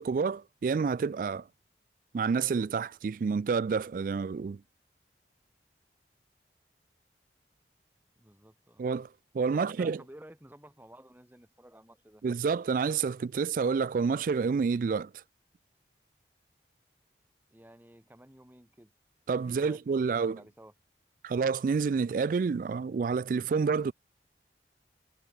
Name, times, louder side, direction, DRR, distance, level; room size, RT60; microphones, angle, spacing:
voice 1, 0.0-1.4 2.1-4.6 8.8-9.1 9.3-10.0 12.2-15.1 19.3-20.4 21.2-23.9, right 5 dB, 50° right, 0.3 m, -28 dB
voice 2, 8.2-8.8 9.5-12.2 17.5-18.9 19.5-20.7, right 1 dB, 10° right, 1.3 m, -52 dB
head